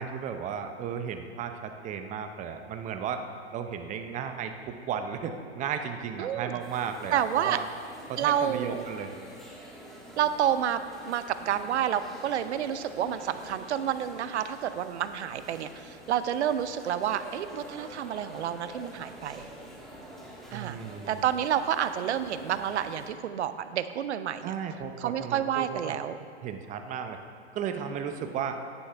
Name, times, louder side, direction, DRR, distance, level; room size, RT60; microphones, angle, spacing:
voice 1, 0.0-3.2 3.5-7.6 8.1-9.2 20.5-21.2 24.4-26.0 26.4-27.2 27.5-28.6, right 7 dB, 20° right, 7 dB, 0.6 m, -34 dB
voice 2, 6.2-6.6 7.1-7.6 8.2-8.8 10.2-19.5 20.5-20.8 21.1-24.5 25.0-26.2, right 9 dB, 75° right, 12 dB, 0.7 m, -29 dB
sound 1, 6.6-23.1, equal, ahead, 1.3 m, -47 dB
9.8 x 9.5 x 3.4 m, 2.2 s
hypercardioid pair, 120°, 34 cm